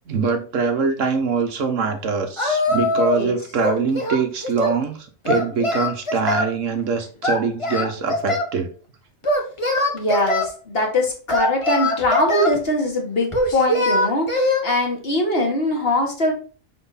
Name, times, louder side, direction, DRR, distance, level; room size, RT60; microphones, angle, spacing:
voice 1, 0.1-8.7, right 5 dB, 80° right, 6 dB, 1.4 m, -23 dB
Singing, 2.4-3.3 3.6-4.8 5.3-6.5 7.2-8.5 9.2-10.5 11.3-12.6 13.3-14.6, left 1 dB, 25° left, 1.0 m, -22 dB
voice 2, 9.9-16.3, left 1 dB, 50° left, 1 dB, 1.9 m, -22 dB
5.9 x 4.5 x 4.1 m, 0.39 s
omnidirectional pair, 1.3 m